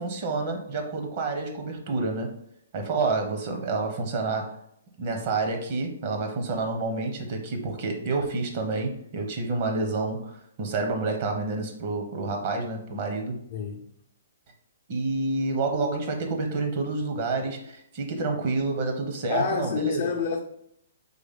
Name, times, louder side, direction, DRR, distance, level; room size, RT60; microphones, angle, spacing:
voice 1, 0.0-2.3 2.7-4.5 5.0-13.4 14.9-20.0, right 3 dB, 45° right, 1.1 m, -29 dB
voice 2, 13.5-13.9 19.3-20.4, left 5 dB, 50° left, 0.6 m, -28 dB
4.0 x 3.3 x 3.7 m
hypercardioid pair, 130°, 0 cm